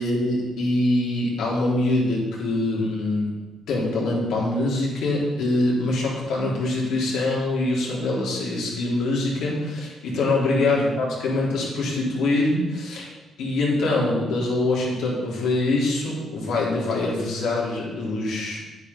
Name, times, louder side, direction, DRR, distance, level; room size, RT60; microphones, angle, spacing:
voice 1, 0.0-3.4 3.7-13.1 13.4-18.6, left 2 dB, 85° left, -4 dB, 3.9 m, -24 dB
9.8 x 9.1 x 5.6 m, 1.2 s
cardioid pair, 90°, 0 cm